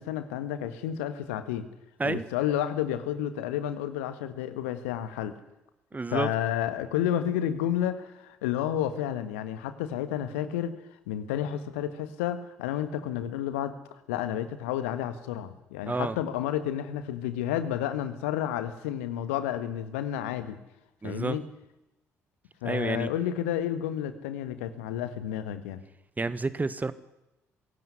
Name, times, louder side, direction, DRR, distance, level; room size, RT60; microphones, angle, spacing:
voice 1, 0.0-1.6 2.0-5.3 6.1-10.7 11.1-20.6 21.0-21.4 22.6-25.8, left 10 dB, 70° left, 11 dB, 1.6 m, -31 dB
voice 2, 5.9-6.3 15.9-16.2 21.0-21.4 22.6-23.1 26.2-26.9, right 3 dB, 20° right, 15 dB, 1.5 m, -29 dB
22.5 x 17.0 x 9.7 m, 0.93 s
figure-of-eight pair, 45°, 7 cm